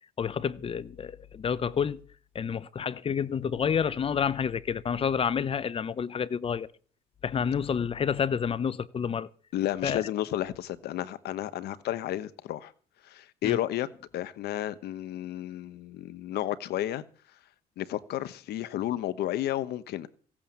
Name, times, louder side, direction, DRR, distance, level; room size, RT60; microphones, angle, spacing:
voice 1, 0.2-2.0 2.3-6.7 7.2-9.3 9.8-10.1 13.4-13.6, left 7 dB, 35° left, 0.8 m, -29 dB
voice 2, 9.5-12.7 13.0-13.9 14.1-17.0 17.8-20.1, left 13 dB, 70° left, 1.2 m, -32 dB
16.0 x 8.6 x 7.4 m
cardioid pair, 110°, 17 cm